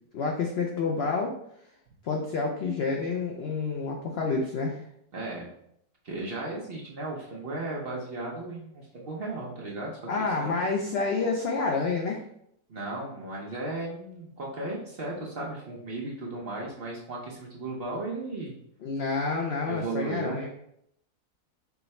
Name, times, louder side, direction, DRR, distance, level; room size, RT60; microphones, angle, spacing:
voice 1, 0.1-1.3 2.0-4.8 10.1-12.2 18.8-20.5, left 4 dB, 75° left, 0 dB, 0.5 m, -28 dB
voice 2, 5.1-5.5 6.0-9.9 10.2-10.6 12.7-18.6 19.6-20.4, right 2 dB, 50° right, -3 dB, 0.7 m, -35 dB
4.6 x 2.2 x 4.1 m, 0.73 s
omnidirectional pair, 1.6 m